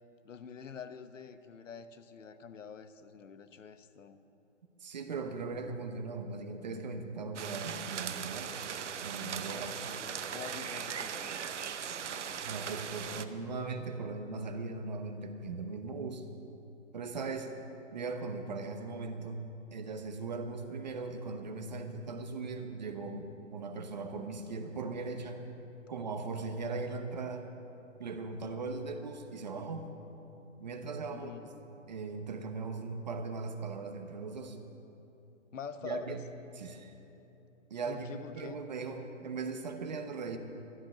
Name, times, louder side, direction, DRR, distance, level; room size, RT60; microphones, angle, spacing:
voice 1, 0.2-4.2 9.9-11.3 31.1-31.5 35.5-36.2 37.9-38.6, left 7 dB, 75° left, 11 dB, 1.0 m, -46 dB
voice 2, 4.8-8.5 9.0-9.8 12.4-16.3 16.9-17.5 17.9-25.4 25.9-27.5 28.0-29.9 30.6-31.5 31.9-34.6 35.8-36.2 36.6-36.9 37.7-40.4, right 4 dB, 35° right, 6 dB, 0.9 m, -39 dB
sound 1, 7.4-13.3, right 7 dB, 65° right, 0.8 m, -39 dB
13.5 x 7.6 x 9.5 m, 3.0 s
hypercardioid pair, 170°, 38 cm